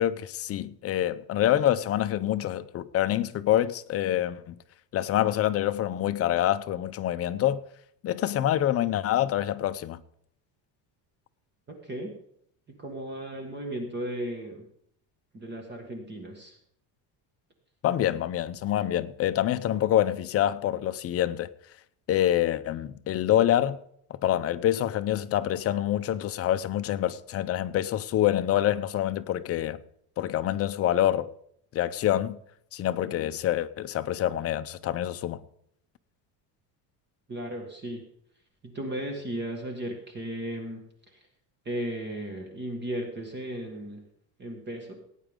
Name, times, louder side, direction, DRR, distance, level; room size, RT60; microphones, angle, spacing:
voice 1, 0.0-4.6 4.9-7.6 8.0-10.0 17.8-21.5 22.1-23.8 24.1-29.8 30.2-31.3 31.7-32.4 32.7-35.5, left 12 dB, 35° left, 0.5 m, -26 dB
voice 2, 11.7-12.1 12.7-14.7 15.3-16.6 37.3-38.0 38.6-41.2 41.7-44.0 44.4-44.9, right 1 dB, 25° right, 1.8 m, -35 dB
18.0 x 9.1 x 3.7 m
cardioid pair, 170°, 44 cm